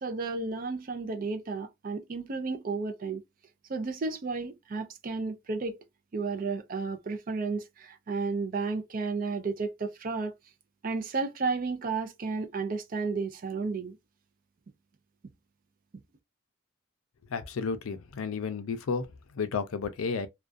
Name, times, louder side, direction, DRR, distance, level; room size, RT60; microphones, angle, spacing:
voice 1, 0.0-3.2 3.7-5.8 6.1-10.3 10.8-14.0, right 4 dB, 40° right, 0.4 m, -32 dB
voice 2, 17.3-19.1 19.3-20.3, left 5 dB, 85° left, 0.5 m, -32 dB
2.3 x 2.2 x 2.5 m
head